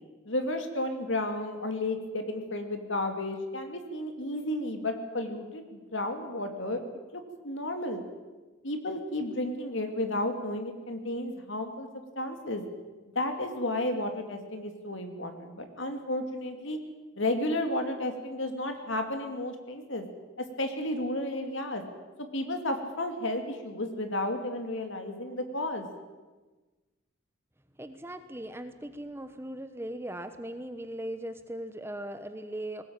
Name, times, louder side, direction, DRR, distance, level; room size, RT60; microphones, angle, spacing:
voice 1, 0.3-6.8 7.1-8.0 8.6-11.9 12.2-12.6 13.1-16.8 17.2-20.1 20.6-21.8 22.3-25.9, left 1 dB, 60° left, 6 dB, 2.7 m, -32 dB
voice 2, 27.8-32.8, right 1 dB, 10° right, 9 dB, 1.0 m, -39 dB
20.0 x 18.0 x 8.9 m, 1.2 s
head